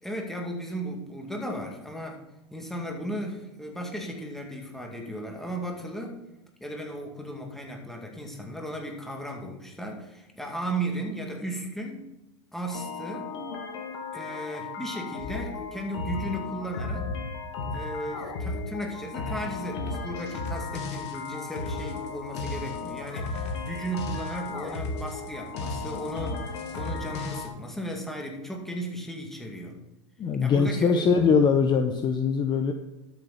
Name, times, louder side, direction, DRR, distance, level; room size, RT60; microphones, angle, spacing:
voice 1, 0.0-2.2 2.5-6.2 6.6-12.1 12.5-13.3 14.1-17.1 17.7-29.8 30.4-31.3, right 1 dB, ahead, 1 dB, 2.2 m, -35 dB
sound 1, 12.7-27.5, left 3 dB, 65° left, 2.0 m, -34 dB
voice 2, 30.2-32.7, left 5 dB, 30° left, 7 dB, 0.8 m, -22 dB
12.5 x 6.8 x 4.3 m, 0.99 s
hypercardioid pair, 105°, 16 cm